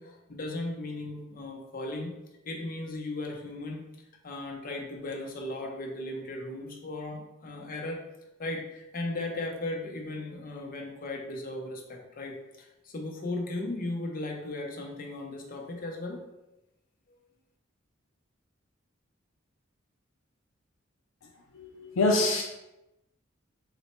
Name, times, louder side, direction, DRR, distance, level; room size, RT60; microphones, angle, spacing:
voice 1, 0.0-2.2 2.4-3.8 4.2-8.0 8.4-16.2, left 2 dB, 45° left, 1 dB, 0.6 m, -36 dB
voice 2, 21.6-22.4, left 2 dB, 90° left, -1 dB, 0.4 m, -25 dB
4.0 x 2.1 x 4.2 m, 0.95 s
head